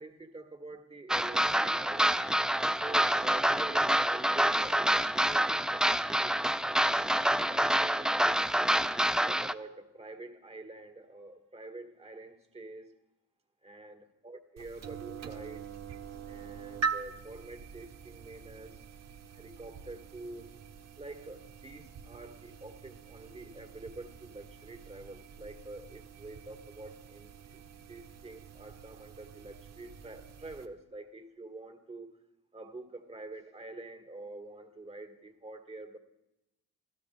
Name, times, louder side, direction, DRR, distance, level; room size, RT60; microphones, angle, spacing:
voice 1, 0.0-2.2 2.8-5.8 6.1-6.6 7.5-8.2 9.0-12.9 13.6-15.7 16.3-18.8 19.3-20.5 21.0-27.6 27.9-32.1 32.5-36.0, right 2 dB, 20° right, 4 dB, 2.1 m, -47 dB
sound 1, 1.1-9.5, right 1 dB, ahead, 0.5 m, -27 dB
sound 2, 14.6-30.7, right 5 dB, 60° right, 1.3 m, -44 dB
26.5 x 16.5 x 2.6 m, 0.90 s
cardioid pair, 90°, 30 cm